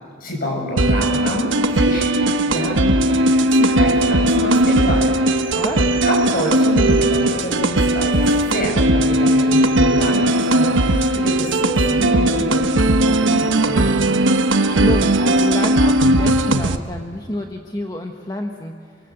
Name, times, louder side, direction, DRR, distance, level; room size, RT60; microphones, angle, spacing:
voice 1, 0.2-5.1 5.5-5.6 6.0-14.1, equal, 50° left, 0 dB, 7.8 m, -26 dB
sound 1, 0.8-16.8, right 1 dB, 75° right, 1.1 m, -17 dB
voice 2, 5.4-6.0 14.6-19.0, left 1 dB, 20° left, 3 dB, 1.2 m, -29 dB
27.5 x 24.5 x 7.9 m, 2.2 s
head